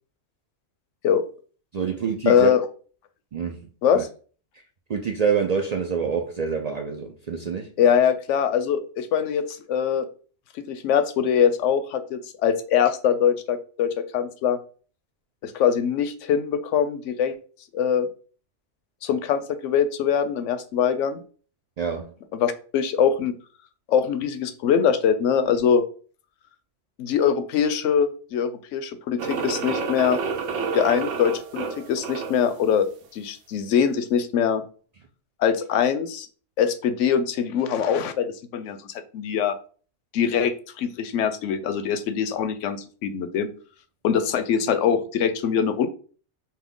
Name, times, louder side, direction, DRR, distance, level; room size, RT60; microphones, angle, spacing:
voice 1, 1.7-2.6 3.3-3.7 3.9-4.0 4.9-7.7 21.8-22.1, right 6 dB, 55° right, 3 dB, 0.4 m, -26 dB
voice 2, 2.3-2.6 3.8-4.1 7.8-10.1 10.5-14.6 15.4-17.4 17.7-18.1 19.0-21.2 22.3-23.3 23.9-25.8 27.0-30.2 30.7-34.6 35.4-36.3 36.6-39.6 40.1-43.5 44.0-45.9, left 8 dB, 90° left, 11 dB, 0.9 m, -23 dB
sound 1, 29.2-32.5, right 5 dB, 85° right, 1.0 m, -29 dB
5.6 x 2.2 x 3.6 m, 0.41 s
omnidirectional pair, 1.2 m